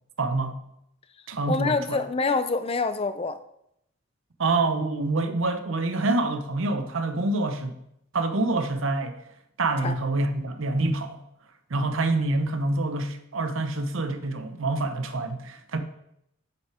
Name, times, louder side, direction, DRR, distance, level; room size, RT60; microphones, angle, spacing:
voice 1, 0.2-0.6 1.3-2.0 4.4-7.8 8.1-9.2 9.6-11.2 11.7-15.8, right 2 dB, 65° right, 0.7 m, -26 dB
voice 2, 1.5-3.4 9.8-9.9, left 3 dB, 25° left, 0.4 m, -26 dB
6.3 x 5.7 x 4.9 m
head